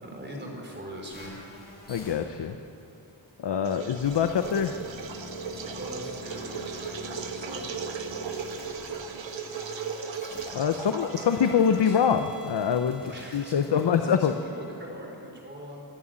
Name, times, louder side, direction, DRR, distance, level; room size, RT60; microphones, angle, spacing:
voice 1, 0.0-1.4 5.4-9.2 10.7-12.0 12.9-15.8, right 1 dB, 25° right, 0 dB, 4.1 m, -42 dB
sound 1, 1.1-14.7, left 2 dB, 20° left, 6.2 m, -46 dB
voice 2, 1.9-2.6 3.4-4.8 10.5-13.0 13.3-14.3, left 7 dB, 65° left, 7 dB, 0.9 m, -24 dB
sound 2, 3.6-12.2, right 6 dB, 80° right, 1.4 m, -37 dB
27.0 x 11.5 x 8.9 m, 2.7 s
wide cardioid pair, 175°, 44 cm